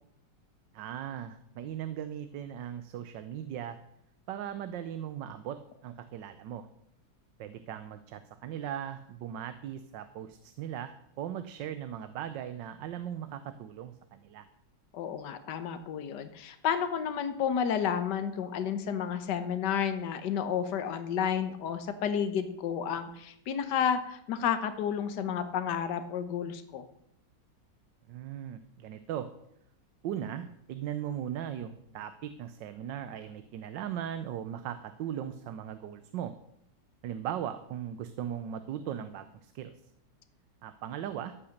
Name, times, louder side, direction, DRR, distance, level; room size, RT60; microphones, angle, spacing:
voice 1, 0.7-3.8 4.3-6.7 7.4-14.4 28.1-29.3 30.0-36.3 37.0-39.7 40.6-41.3, right 10 dB, 90° right, 11 dB, 1.4 m, -38 dB
voice 2, 14.9-26.8, left 8 dB, 75° left, 10 dB, 1.6 m, -31 dB
13.0 x 8.7 x 6.6 m, 0.75 s
omnidirectional pair, 1.9 m